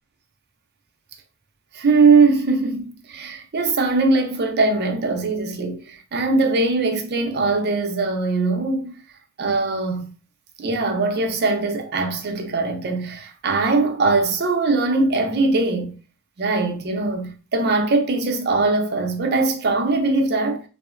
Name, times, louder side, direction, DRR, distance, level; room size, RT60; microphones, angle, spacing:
voice 1, 1.7-8.9 9.4-10.1 10.6-16.0 16.4-20.6, right 3 dB, 50° right, 0.5 m, -21 dB
2.8 x 2.1 x 2.4 m
head